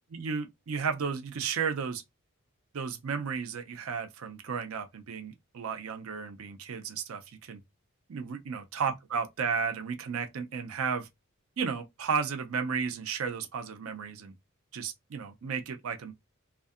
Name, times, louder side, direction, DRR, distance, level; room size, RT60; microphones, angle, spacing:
voice 1, 0.1-2.0 2.7-7.6 8.1-11.1 11.6-14.3 14.7-16.1, right 6 dB, 70° right, 0.5 m, -33 dB
2.5 x 2.2 x 2.4 m
head